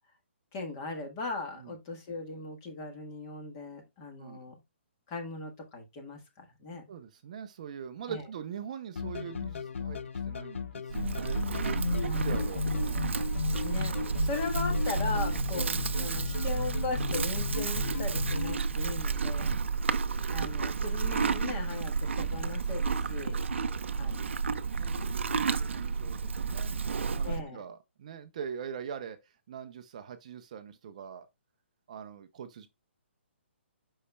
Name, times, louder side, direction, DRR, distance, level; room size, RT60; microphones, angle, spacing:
voice 1, 0.5-4.5 5.1-6.8 8.1-8.2 12.0-12.6 13.6-13.9 14.2-19.6 20.3-23.4 24.0-24.4 27.2-27.6, left 3 dB, 20° left, 1.5 m, -38 dB
voice 2, 6.9-13.1 19.6-19.9 23.6-24.2 24.6-31.3 31.9-32.7, right 7 dB, 35° right, 0.6 m, -43 dB
sound 1, 9.0-18.6, left 5 dB, 90° left, 0.6 m, -34 dB
Livestock farm animals working animals, 10.9-27.4, right 5 dB, 75° right, 0.7 m, -31 dB
8.3 x 5.6 x 2.3 m
hypercardioid pair, 170°, 7 cm